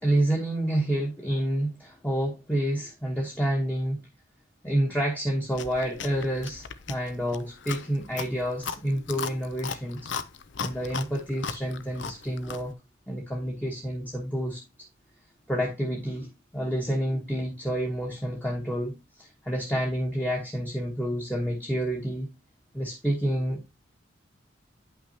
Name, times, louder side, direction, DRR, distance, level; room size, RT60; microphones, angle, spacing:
voice 1, 0.0-4.0 4.6-10.1 10.6-12.7 13.1-14.6 15.5-16.3 16.5-18.9 19.2-22.3 22.7-23.6, right 1 dB, 10° left, 1.2 m, -28 dB
Chewing mastication, 5.5-12.7, left 6 dB, 70° left, 0.6 m, -37 dB
9.7 x 5.8 x 2.8 m
head